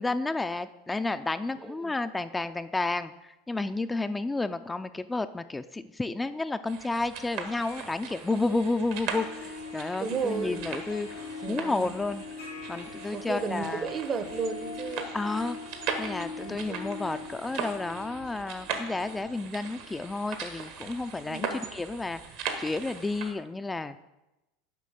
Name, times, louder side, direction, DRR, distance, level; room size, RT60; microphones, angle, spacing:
voice 1, 0.0-12.2 12.7-13.9 15.1-15.6 16.0-22.2 22.6-24.0, left 3 dB, 15° left, 10 dB, 0.4 m, -31 dB
sound 1, 6.7-23.3, right 6 dB, 65° right, 1.3 m, -39 dB
Harp, 7.4-21.3, left 4 dB, 90° left, 2.5 m, -43 dB
voice 2, 10.0-10.6 11.4-12.0 13.1-15.1 16.4-16.8 21.3-21.7, right 5 dB, 35° right, 11 dB, 0.8 m, -33 dB
7.5 x 5.1 x 6.4 m, 0.97 s
hypercardioid pair, 85°, 0 cm